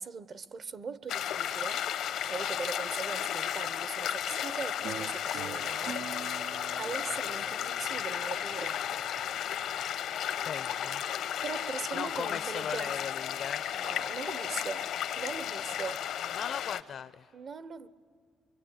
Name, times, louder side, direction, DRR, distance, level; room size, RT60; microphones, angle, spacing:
voice 1, 0.0-1.8 2.3-6.0 6.8-8.8 11.4-12.9 13.7-14.9 15.2-16.0 17.3-17.9, right 5 dB, 55° right, 1.0 m, -40 dB
sound 1, 1.1-16.8, left 10 dB, 80° left, 1.0 m, -34 dB
sound 2, 4.8-9.8, right 8 dB, 80° right, 0.7 m, -45 dB
voice 2, 10.4-11.0 11.9-13.6 16.3-17.3, left 8 dB, 60° left, 0.6 m, -38 dB
26.0 x 23.5 x 8.9 m
cardioid pair, 90°, 0 cm